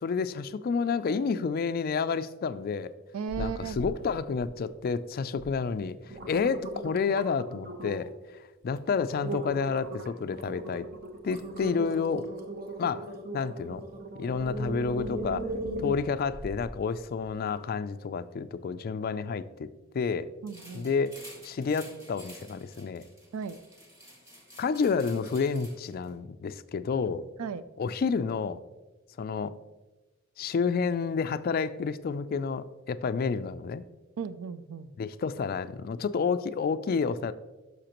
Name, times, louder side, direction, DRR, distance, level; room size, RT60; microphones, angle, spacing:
voice 1, 0.0-2.9 3.4-8.1 8.6-10.9 11.2-12.3 12.8-13.1 13.3-13.8 14.2-15.5 15.8-19.7 19.9-20.3 20.7-21.1 21.4-23.0 24.6-27.2 27.8-28.6 29.2-29.5 30.4-33.8 35.0-37.3, left 5 dB, 45° left, 14 dB, 0.3 m, -30 dB
voice 2, 3.1-3.8 20.4-20.9 23.3-23.6 27.4-27.6 34.2-34.9, right 6 dB, 80° right, 14 dB, 0.4 m, -35 dB
sound 1, 3.3-3.9 4.3-4.8 5.4-5.5 5.9-8.2 8.6-8.8 9.2-16.7 17.2-17.3, right 1 dB, 45° right, 0.9 m, -38 dB
sound 2, 20.5-26.1, equal, 15° right, 1.6 m, -51 dB
10.0 x 6.4 x 3.0 m, 1.2 s
head